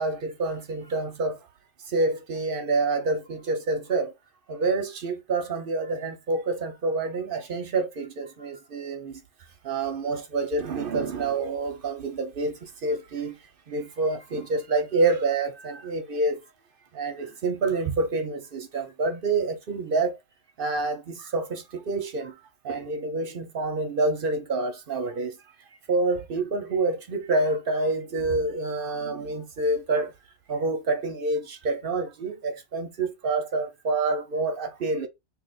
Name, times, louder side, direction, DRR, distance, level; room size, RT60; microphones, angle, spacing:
voice 1, 0.0-1.4 1.9-4.1 4.5-9.1 9.6-12.5 12.8-13.3 13.7-16.4 16.9-20.2 20.6-22.3 22.6-25.3 25.9-30.1 30.5-35.1, right 3 dB, 55° right, 0.7 m, -27 dB
2.7 x 2.4 x 3.9 m
omnidirectional pair, 1.4 m